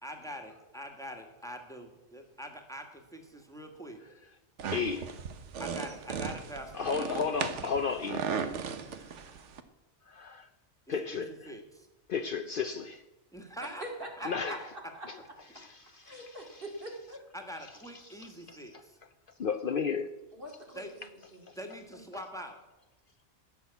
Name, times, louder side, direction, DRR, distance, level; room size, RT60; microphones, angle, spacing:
voice 1, 0.0-4.0 5.6-7.3 11.1-11.9 13.3-13.8 14.2-14.6 17.3-18.9 20.7-20.9 21.5-22.6, equal, 5° left, 1.6 m, -44 dB
sound 1, 4.6-9.6, right 6 dB, 85° right, 1.3 m, -37 dB
voice 2, 4.7-5.1 6.7-8.3 10.1-10.5 10.9-11.5 12.1-13.0 14.3-14.6 15.5-16.3 18.0-18.8 19.4-20.1 21.5-21.6, left 5 dB, 55° left, 0.7 m, -33 dB
voice 3, 13.6-15.1 16.0-17.2 20.3-21.5 21.9-22.0, right 1 dB, 50° right, 2.5 m, -44 dB
15.5 x 6.4 x 8.2 m
omnidirectional pair, 1.2 m